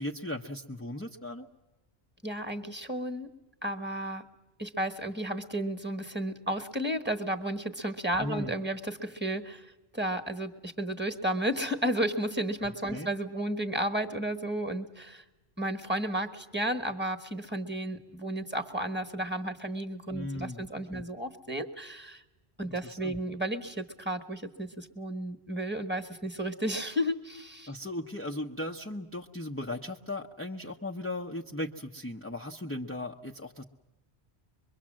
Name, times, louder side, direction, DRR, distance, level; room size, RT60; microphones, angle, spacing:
voice 1, 0.0-1.5 8.2-8.5 12.6-13.1 20.1-20.6 20.9-21.1 22.7-23.2 27.7-33.6, left 1 dB, 15° left, 1 dB, 0.8 m, -37 dB
voice 2, 2.2-3.3 3.6-4.3 4.6-15.2 15.6-22.2 22.6-27.7, right 1 dB, 10° right, 7 dB, 1.4 m, -33 dB
24.5 x 23.0 x 7.5 m, 1.1 s
omnidirectional pair, 1.1 m